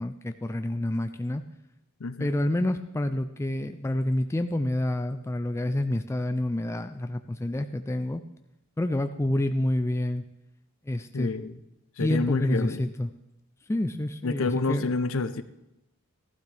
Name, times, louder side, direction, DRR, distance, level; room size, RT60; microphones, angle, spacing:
voice 1, 0.0-1.4 2.2-8.2 8.8-10.2 10.9-11.3 12.0-13.1 13.7-14.8, left 1 dB, 10° left, 8 dB, 0.3 m, -28 dB
voice 2, 11.1-11.5 12.0-12.8 14.2-15.4, left 3 dB, 65° left, 12 dB, 0.6 m, -28 dB
15.0 x 12.0 x 3.4 m, 0.89 s
head